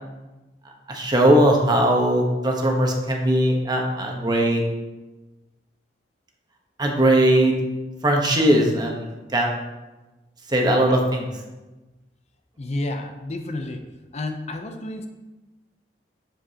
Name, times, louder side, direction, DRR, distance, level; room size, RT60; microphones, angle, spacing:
voice 1, 0.9-4.6 6.8-7.5 8.0-9.1 9.3-9.5 10.5-11.3, right 1 dB, 25° right, 1 dB, 1.1 m, -19 dB
voice 2, 12.6-13.8 14.1-15.1, left 2 dB, 40° left, 5 dB, 0.6 m, -30 dB
7.8 x 7.4 x 2.8 m, 1.1 s
head